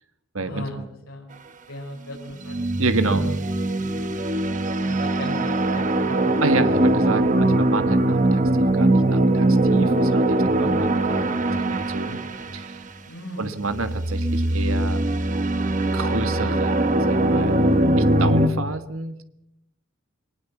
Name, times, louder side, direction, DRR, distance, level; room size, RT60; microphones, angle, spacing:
voice 1, 0.4-1.3 1.7-2.6 3.0-3.3 3.8-4.0 4.8-6.4 10.6-10.8 13.1-13.6 13.9-14.0, left 1 dB, 85° left, -1 dB, 4.3 m, -36 dB
sound 1, 2.5-12.7 13.7-18.5, right 1 dB, 35° right, 1.2 m, -21 dB
voice 2, 2.8-3.2 6.4-11.2 11.6-12.2 12.5-12.8 13.4-15.0 15.9-17.5 17.9-19.2, right 3 dB, 80° right, 9 dB, 1.5 m, -29 dB
22.5 x 19.5 x 7.2 m, 0.85 s
head